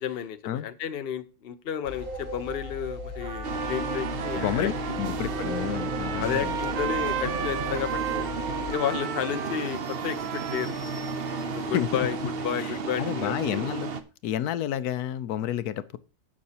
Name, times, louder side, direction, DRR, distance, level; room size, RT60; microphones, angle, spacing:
voice 1, 0.0-4.7 6.0-8.3 8.7-10.7 11.5-12.2 12.4-13.7, left 9 dB, 45° left, 0.9 m, -32 dB
sound 1, 1.8-8.7, left 2 dB, 30° right, 4.3 m, -38 dB
Trumpet, 3.2-11.7, right 9 dB, 75° right, 1.4 m, -35 dB
sound 2, 3.4-14.0, right 4 dB, 45° right, 0.9 m, -33 dB
voice 2, 4.3-6.5 11.4-11.9 12.6-12.7 13.0-13.9 14.2-16.0, left 11 dB, 85° left, 1.2 m, -30 dB
16.0 x 6.2 x 2.8 m
omnidirectional pair, 1.6 m